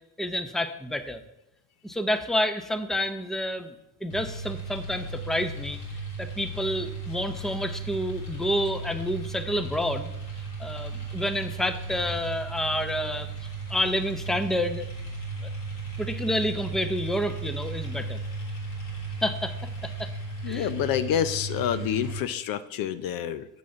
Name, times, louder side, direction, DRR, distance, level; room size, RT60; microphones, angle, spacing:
voice 1, 0.2-1.2 1.8-3.7 4.0-5.8 6.2-10.1 10.6-14.9 15.4-15.5 16.0-18.2 19.2-20.1 20.5-20.7 21.8-21.9, equal, ahead, 9 dB, 0.7 m, -29 dB
sound 1, 4.1-22.2, right 3 dB, 80° left, 3.1 m, -35 dB
voice 2, 20.4-23.5, left 9 dB, 55° left, 13 dB, 0.6 m, -28 dB
7.4 x 6.2 x 5.6 m, 0.90 s
hypercardioid pair, 75°, 42 cm